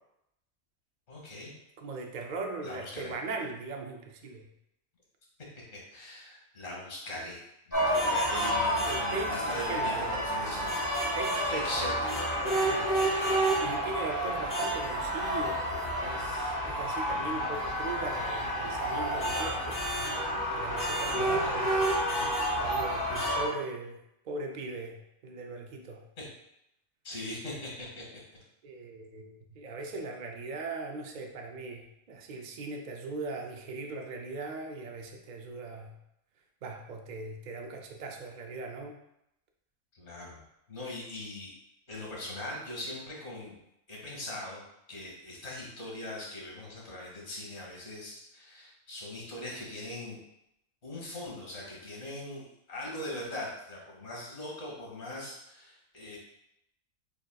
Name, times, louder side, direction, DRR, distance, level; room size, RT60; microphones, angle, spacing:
voice 1, 1.1-1.5 2.6-3.1 5.7-7.4 7.7-10.8 11.5-12.1 13.2-13.5 21.1-21.4 26.2-26.3 27.0-28.0 39.9-40.4 40.7-41.5 41.9-43.6 43.9-44.6 44.9-50.2 50.8-52.4 52.7-56.2, left 1 dB, 55° left, -3 dB, 1.8 m, -40 dB
voice 2, 1.8-4.5 8.9-10.1 11.2-11.8 12.5-12.9 13.6-19.8 20.5-21.7 22.5-26.0 28.6-36.0 36.6-39.0, right 3 dB, 65° right, 3 dB, 0.4 m, -39 dB
sound 1, 7.7-23.5, equal, 15° left, 1.2 m, -30 dB
6.4 x 2.8 x 2.3 m, 0.81 s
omnidirectional pair, 1.3 m